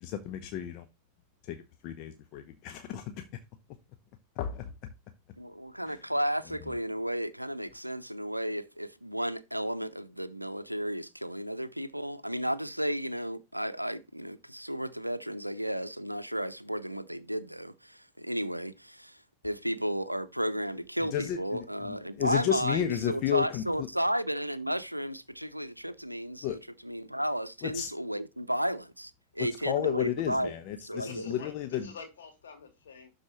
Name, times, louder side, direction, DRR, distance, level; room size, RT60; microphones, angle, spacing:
voice 1, 0.0-0.9 1.4-3.3 4.3-4.9 5.9-6.0 6.7-6.8 21.0-23.9 26.4-26.6 27.6-27.9 29.4-31.9, left 11 dB, 40° left, 0.8 m, -33 dB
voice 2, 5.4-19.2 19.4-26.6 26.8-30.5 30.8-31.3, equal, 90° right, 0.5 m, -33 dB
voice 3, 30.9-33.1, left 5 dB, 65° left, 2.7 m, -47 dB
11.5 x 4.1 x 3.0 m
figure-of-eight pair, 90°, 0 cm